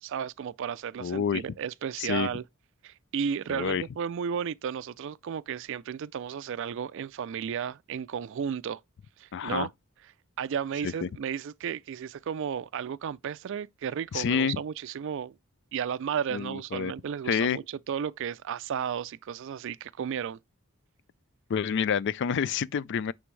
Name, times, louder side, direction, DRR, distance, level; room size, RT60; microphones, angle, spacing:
voice 1, 0.0-2.4 2.8-8.8 9.2-9.7 10.4-15.4 15.7-20.4, right 7 dB, 60° right, 0.3 m, -33 dB
voice 2, 1.0-1.4 2.0-2.3 3.5-3.8 9.3-9.7 10.8-11.1 14.1-14.6 16.3-16.9 17.3-17.6 21.5-23.1, left 7 dB, 55° left, 0.3 m, -28 dB
9.5 x 3.5 x 3.2 m
head